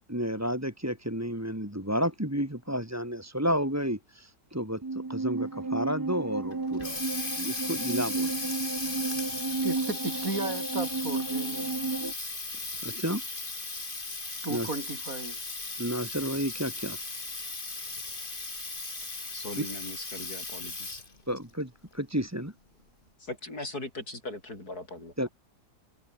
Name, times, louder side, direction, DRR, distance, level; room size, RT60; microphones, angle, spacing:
voice 1, 0.1-8.5 12.8-13.2 14.5-14.7 15.8-17.0 19.6-19.7 21.3-22.5 25.2-25.3, equal, 10° right, 3.5 m, -31 dB
sound 1, 4.8-12.1, right 3 dB, 30° right, 0.4 m, -32 dB
Water tap faucet, 6.5-21.2, left 3 dB, 30° left, 2.7 m, -37 dB
voice 2, 9.6-11.7 14.4-15.4, right 2 dB, 55° right, 5.8 m, -35 dB
voice 3, 19.3-21.0 23.2-25.3, left 2 dB, 65° left, 8.4 m, -39 dB
omnidirectional pair, 1.7 m